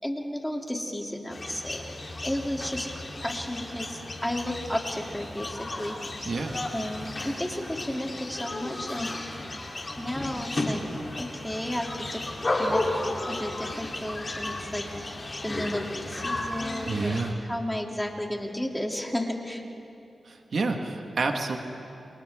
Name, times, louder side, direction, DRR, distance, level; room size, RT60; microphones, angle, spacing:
voice 1, 0.0-1.9 2.2-6.0 6.7-9.2 10.0-10.8 11.2-12.3 12.5-12.8 13.3-19.6, left 1 dB, 10° left, 1 dB, 3.1 m, -33 dB
sound 1, 1.3-17.3, left 2 dB, 40° left, 3.6 m, -34 dB
voice 2, 16.9-17.3 20.5-21.6, right 3 dB, 65° right, 3 dB, 1.8 m, -28 dB
28.5 x 28.5 x 3.7 m, 2.7 s
cardioid pair, 50°, 0 cm